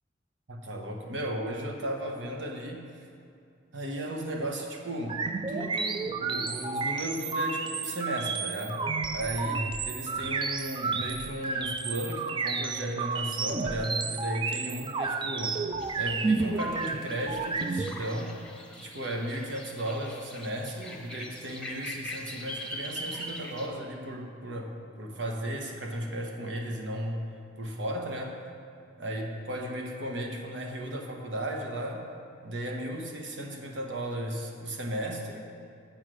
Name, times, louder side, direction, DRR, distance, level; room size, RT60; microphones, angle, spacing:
voice 1, 0.5-2.9 3.7-5.2 5.5-8.8 9.1-15.6 16.0-18.4 18.8-27.2 27.6-28.4 29.0-32.1 32.4-35.4, right 1 dB, 85° right, 1 dB, 1.2 m, -35 dB
sound 1, 5.1-17.9, right 4 dB, 25° right, 0.3 m, -31 dB
sound 2, 15.8-23.7, left 1 dB, 5° left, 0.8 m, -42 dB
7.4 x 7.2 x 6.2 m, 2.4 s
head